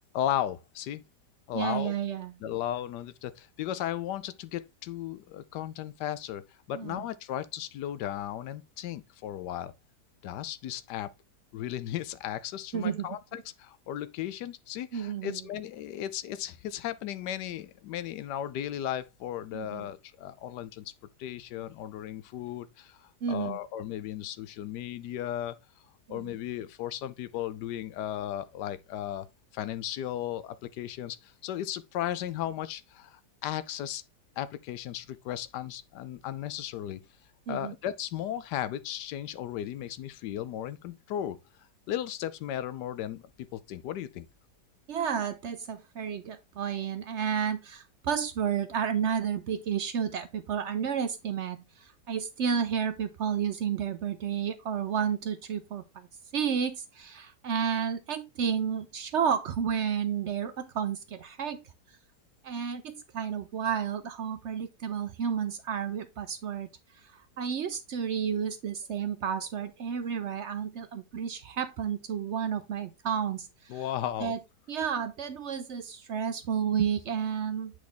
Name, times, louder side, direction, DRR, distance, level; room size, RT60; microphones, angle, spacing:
voice 1, 0.1-1.0 1.5-1.9 2.4-9.7 10.2-11.1 11.5-20.9 21.2-25.5 26.1-29.3 29.5-34.0 34.4-37.0 37.5-41.4 41.9-44.3 73.7-74.4, left 11 dB, 85° left, 1.2 m, -35 dB
voice 2, 1.5-2.3 6.7-7.0 12.7-13.1 14.9-15.4 19.5-19.9 23.2-23.6 26.1-26.3 37.5-37.7 44.9-56.1 56.3-61.6 62.4-66.7 67.0-73.8 74.2-74.4 74.7-77.7, right 7 dB, 65° right, 0.7 m, -31 dB
7.6 x 4.1 x 3.4 m
omnidirectional pair, 1.8 m